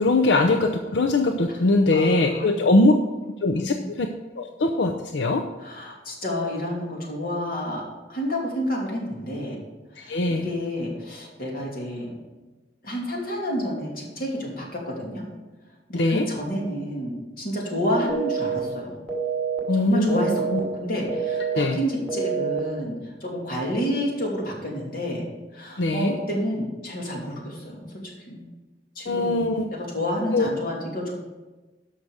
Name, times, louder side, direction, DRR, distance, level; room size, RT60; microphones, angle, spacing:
voice 1, 0.0-2.9 3.4-4.1 4.4-5.4 10.0-10.5 15.9-16.3 19.7-20.6 21.5-21.8 25.8-26.2 29.1-29.7 30.3-30.5, left 2 dB, 85° left, 4 dB, 0.6 m, -21 dB
voice 2, 1.9-2.5 3.5-4.0 5.6-7.8 8.1-9.6 9.9-12.1 12.8-15.2 15.9-19.0 19.7-20.3 20.6-27.8 28.3-28.4 29.0-31.1, equal, 55° left, -2 dB, 2.7 m, -29 dB
sound 1, 18.1-18.6 19.1-19.6 20.1-20.6 21.1-21.6 22.1-22.6, right 7 dB, 10° left, 2.4 m, -27 dB
12.5 x 5.8 x 4.9 m, 1.2 s
head